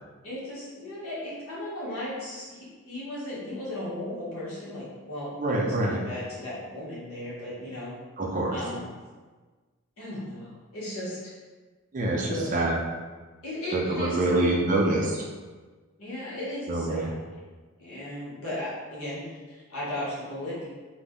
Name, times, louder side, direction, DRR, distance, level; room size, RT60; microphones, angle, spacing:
voice 1, 0.2-7.9 8.5-8.9 10.0-11.2 12.3-12.6 13.4-14.5 16.0-17.2 17.8-20.7, left 1 dB, 90° left, -7 dB, 1.1 m, -36 dB
voice 2, 5.4-6.0 8.2-8.6 11.9-12.8 13.7-15.2 16.7-17.1, right 2 dB, 40° right, -1 dB, 0.4 m, -25 dB
2.5 x 2.1 x 3.5 m, 1.4 s
head